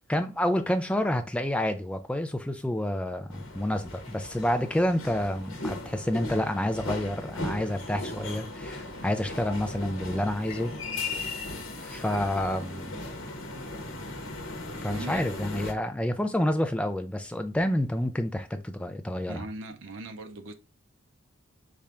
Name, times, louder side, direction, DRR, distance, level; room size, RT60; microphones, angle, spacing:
voice 1, 0.1-10.7 11.8-13.0 14.8-19.4, left 1 dB, 5° left, 0.3 m, -29 dB
sound 1, 3.3-15.7, left 2 dB, 80° left, 0.9 m, -37 dB
voice 2, 14.9-15.3 16.2-16.3 19.3-20.5, right 2 dB, 70° right, 0.5 m, -40 dB
4.3 x 2.5 x 3.3 m
head